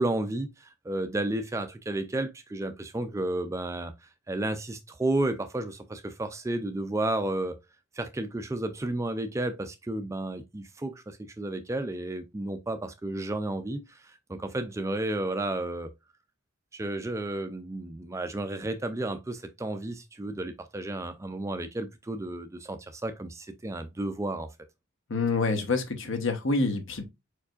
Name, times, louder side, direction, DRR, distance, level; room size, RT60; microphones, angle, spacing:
voice 1, 0.0-7.6 7.9-15.9 16.7-24.5, right 2 dB, 15° right, 0.3 m, -32 dB
voice 2, 25.1-27.0, left 3 dB, 60° left, 1.0 m, -27 dB
4.8 x 4.5 x 2.5 m
head